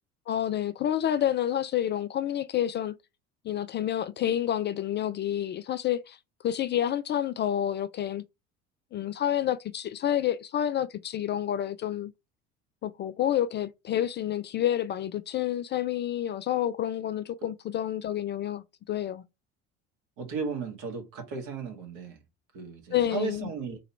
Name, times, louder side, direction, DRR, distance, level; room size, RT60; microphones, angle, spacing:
voice 1, 0.3-2.9 3.4-6.2 6.4-8.2 8.9-12.1 12.8-19.2 22.9-23.5, left 11 dB, 30° left, 0.4 m, -29 dB
voice 2, 20.2-22.2 22.5-23.8, right 5 dB, 60° right, 1.8 m, -35 dB
3.8 x 2.9 x 4.3 m
figure-of-eight pair, 60°, 36 cm